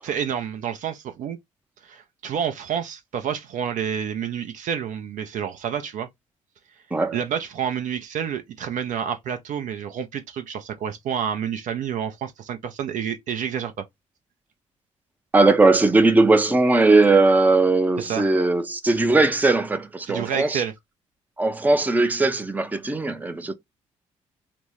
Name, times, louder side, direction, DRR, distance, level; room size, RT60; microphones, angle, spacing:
voice 1, 0.0-1.4 1.8-6.1 7.1-13.8 18.0-18.2 20.1-20.7, right 8 dB, 50° right, 0.6 m, -29 dB
voice 2, 15.3-20.6 21.4-23.5, right 3 dB, 10° right, 0.6 m, -19 dB
3.4 x 2.1 x 3.0 m
figure-of-eight pair, 40°, 16 cm